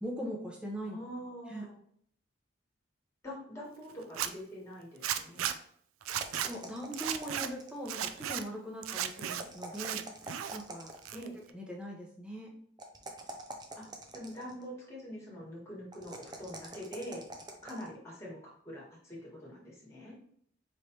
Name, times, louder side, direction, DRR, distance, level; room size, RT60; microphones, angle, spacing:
voice 1, 0.0-1.0 1.5-1.6 6.4-10.0 10.5-10.9 11.5-12.5, equal, 5° right, -2 dB, 0.8 m, -40 dB
voice 2, 0.9-1.8 3.2-5.5 11.1-11.3 13.7-13.9 14.1-17.3 17.6-20.1, equal, 15° left, -5 dB, 1.5 m, -44 dB
Zipper (clothing), 4.0-4.3 5.0-5.5 6.0-6.5 6.9-7.5 7.8-8.4 8.8-9.4 9.7-10.6 10.9-11.5, right 10 dB, 90° right, 0.4 m, -35 dB
sound 1, 6.1-7.9 9.3-11.2 12.8-14.6 15.9-17.9, right 2 dB, 20° right, 0.4 m, -46 dB
4.6 x 3.2 x 2.8 m, 0.64 s
head